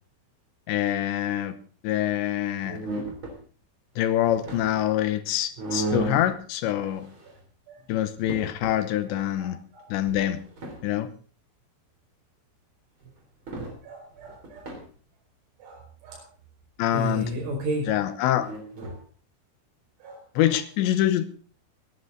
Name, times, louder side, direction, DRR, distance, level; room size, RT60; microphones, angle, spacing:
voice 1, 0.7-1.5 1.8-2.8 4.0-7.1 7.9-9.6 9.9-10.4 10.8-11.1 16.8-17.3 17.9-18.5 20.4-21.3, left 12 dB, 75° left, 11 dB, 2.8 m, -25 dB
sound 1, 2.6-3.3 4.1-4.9 5.6-6.3 6.8-7.4 7.8-7.9 8.2-8.8 10.1-10.8 13.0-13.1 13.5-13.7 14.1-14.8 18.3-19.0, right 2 dB, 25° right, 3.6 m, -34 dB
voice 2, 9.1-9.9 13.6-14.7 15.6-16.2 16.9-18.1 18.9-19.0 20.0-20.2, right 1 dB, 80° right, -2 dB, 7.9 m, -34 dB
20.0 x 11.5 x 3.9 m, 0.40 s
omnidirectional pair, 5.9 m